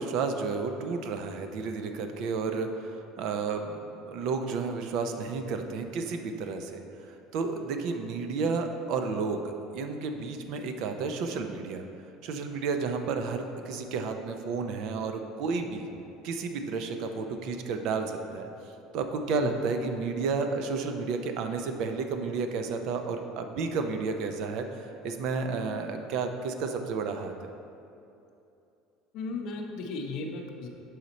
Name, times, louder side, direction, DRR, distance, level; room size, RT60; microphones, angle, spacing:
voice 1, 0.0-6.8 7.3-11.8 12.2-15.9 16.2-18.5 18.9-27.5, right 4 dB, 55° right, 6 dB, 0.4 m, -32 dB
voice 2, 29.1-30.7, left 3 dB, 50° left, 2 dB, 0.6 m, -35 dB
6.3 x 4.2 x 4.0 m, 2.7 s
cardioid pair, 165°, 0 cm